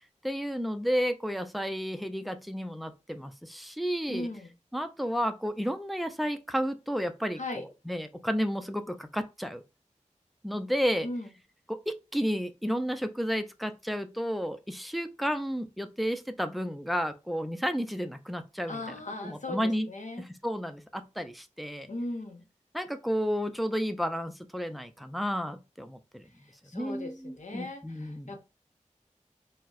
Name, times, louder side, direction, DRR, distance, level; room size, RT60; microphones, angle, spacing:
voice 1, 0.2-4.3 4.7-9.6 10.4-11.1 11.7-18.8 19.2-19.9 20.2-21.9 22.7-26.2 26.7-28.3, equal, ahead, 0.4 m, -32 dB
voice 2, 4.1-4.5 7.4-7.6 11.0-11.3 18.7-20.2 21.9-22.4 26.6-28.4, left 2 dB, 70° left, 0.8 m, -38 dB
4.2 x 2.1 x 2.4 m
wide cardioid pair, 65°, 13 cm